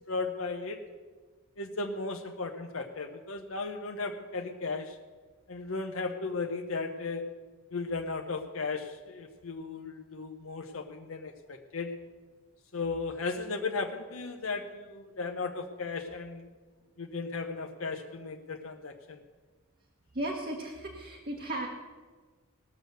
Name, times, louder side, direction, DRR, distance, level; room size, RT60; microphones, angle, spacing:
voice 1, 0.1-0.8 1.6-5.0 5.5-7.2 7.7-11.9 12.7-16.5 17.0-19.2, left 4 dB, 90° left, 3 dB, 0.9 m, -36 dB
voice 2, 20.1-21.7, right 1 dB, 50° right, 0 dB, 1.2 m, -35 dB
19.0 x 6.6 x 6.7 m, 1.4 s
head